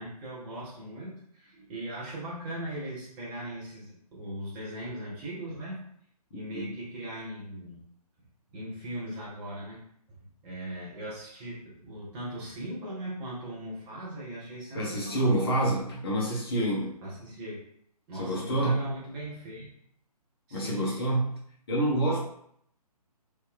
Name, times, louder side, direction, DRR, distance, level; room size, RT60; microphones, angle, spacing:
voice 1, 0.0-5.8 6.3-7.8 8.5-9.8 10.2-15.7 17.0-17.6 18.1-19.7 20.5-21.3, right 1 dB, 5° right, -8 dB, 0.3 m, -39 dB
voice 2, 14.7-17.0 18.2-18.8 20.5-21.2 21.7-22.2, right 1 dB, 35° left, -4 dB, 1.0 m, -27 dB
3.3 x 2.1 x 3.4 m, 0.68 s
figure-of-eight pair, 140°, 20 cm